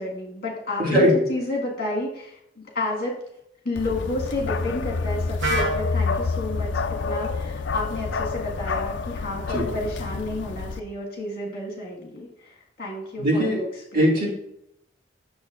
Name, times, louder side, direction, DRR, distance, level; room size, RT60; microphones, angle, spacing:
voice 1, 0.0-3.2 3.7-14.3, left 2 dB, 55° left, -2 dB, 1.7 m, -31 dB
voice 2, 0.8-1.1 9.5-9.7 13.2-13.6 13.9-14.3, equal, 45° right, -4 dB, 2.2 m, -20 dB
Bark, 3.8-10.8, left 4 dB, 75° left, 0.4 m, -28 dB
Wind instrument woodwind instrument, 5.4-9.3, right 3 dB, 70° right, 1.0 m, -34 dB
8.7 x 6.6 x 2.5 m, 0.79 s
head